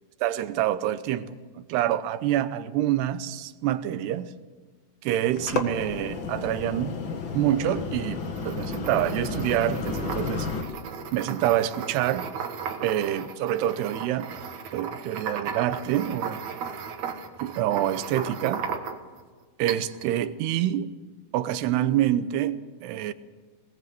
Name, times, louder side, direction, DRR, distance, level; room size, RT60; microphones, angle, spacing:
voice 1, 0.2-1.4 1.7-4.3 5.0-6.9 7.3-10.5 11.1-12.3 12.8-14.3 14.7-16.4 17.4-18.6 19.6-20.9 21.3-23.1, right 12 dB, 85° right, 3.0 m, -26 dB
sound 1, 5.2-10.6, left 4 dB, 65° left, 1.1 m, -32 dB
sound 2, 8.2-19.2 19.7-20.1, right 6 dB, 55° right, 2.4 m, -36 dB
20.5 x 19.5 x 7.6 m
omnidirectional pair, 4.6 m